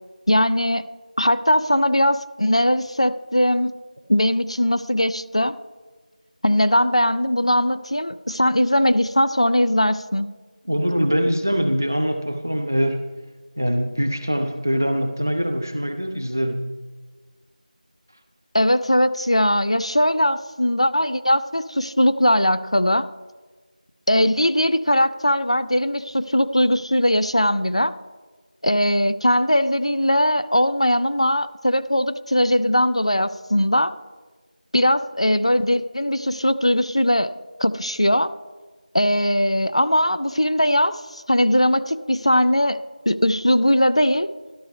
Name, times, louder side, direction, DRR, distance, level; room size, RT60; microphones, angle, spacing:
voice 1, 0.3-0.9 1.2-3.7 4.1-5.6 6.4-10.3 18.5-23.1 24.1-27.9 28.6-33.9 34.7-37.3 37.6-38.3 38.9-42.8 43.1-44.3, left 1 dB, 45° left, 12 dB, 0.3 m, -20 dB
voice 2, 10.7-13.1 13.6-16.7, equal, 20° right, 7 dB, 0.4 m, -23 dB
12.5 x 12.5 x 3.3 m, 1.4 s
figure-of-eight pair, 175°, 4 cm